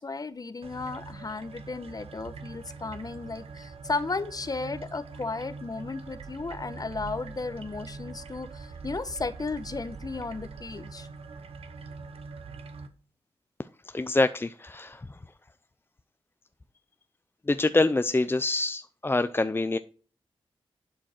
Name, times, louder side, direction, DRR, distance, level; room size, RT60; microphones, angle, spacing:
voice 1, 0.0-11.1, left 3 dB, 40° left, 13 dB, 1.1 m, -34 dB
sound 1, 0.6-12.9, right 4 dB, 80° right, 1.2 m, -43 dB
voice 2, 13.9-15.1 17.5-19.8, left 2 dB, 20° left, 11 dB, 0.5 m, -25 dB
11.5 x 5.2 x 4.4 m, 0.40 s
cardioid pair, 50°, 10 cm